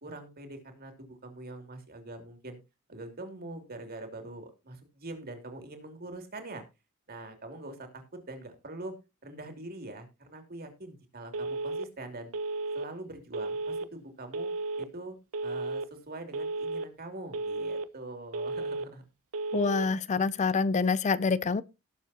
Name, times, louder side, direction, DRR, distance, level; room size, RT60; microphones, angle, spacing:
voice 1, 0.0-2.6 2.9-6.6 7.1-8.9 9.2-12.3 12.7-14.5 14.8-15.2 15.4-19.0, right 2 dB, 45° right, 2.7 m, -43 dB
Telephone, 11.3-11.9 12.3-12.9 13.3-13.9 14.3-14.9 15.3-15.9 16.3-16.9 17.3-17.9 18.3-18.9 19.3-19.9, right 3 dB, 75° right, 0.8 m, -33 dB
voice 2, 19.5-21.6, left 4 dB, 35° left, 0.4 m, -26 dB
18.5 x 7.1 x 2.8 m
head